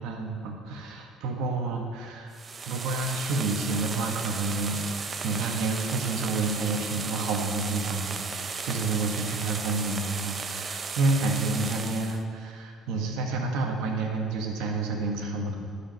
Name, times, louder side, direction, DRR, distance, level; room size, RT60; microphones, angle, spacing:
voice 1, 0.0-2.4 2.7-15.6, right 3 dB, 80° right, 2 dB, 1.3 m, -29 dB
sound 1, 2.3-12.2, right 5 dB, 25° right, 0.4 m, -35 dB
12.0 x 4.9 x 5.4 m, 2.2 s
cardioid pair, 150°, 0 cm